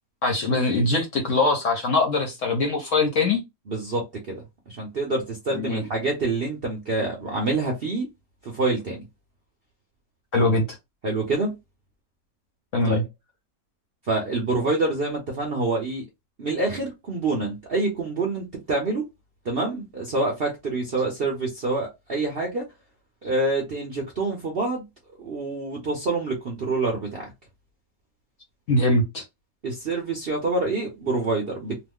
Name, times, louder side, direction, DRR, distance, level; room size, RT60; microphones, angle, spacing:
voice 1, 0.2-3.4 5.5-5.9 10.3-10.6 12.7-13.0 28.7-29.2, left 2 dB, 55° left, 0.9 m, -22 dB
voice 2, 3.7-4.4 4.7-8.1 8.4-9.0 11.0-11.5 12.8-13.0 14.1-16.1 16.4-19.0 19.4-22.6 23.2-24.8 25.2-27.2 29.6-31.8, right 3 dB, 55° right, 0.7 m, -26 dB
3.0 x 2.0 x 3.4 m
omnidirectional pair, 1.8 m